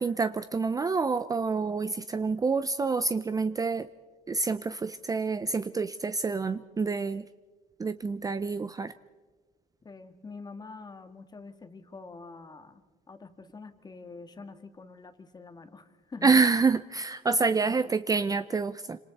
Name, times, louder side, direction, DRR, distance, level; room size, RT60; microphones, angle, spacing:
voice 1, 0.0-3.9 4.3-7.3 7.8-8.9 16.2-19.0, right 4 dB, 20° right, 12 dB, 0.6 m, -27 dB
voice 2, 9.8-16.4 17.6-17.8, left 4 dB, 25° left, 7 dB, 1.9 m, -46 dB
27.0 x 26.5 x 4.3 m, 1.3 s
cardioid pair, 110°, 17 cm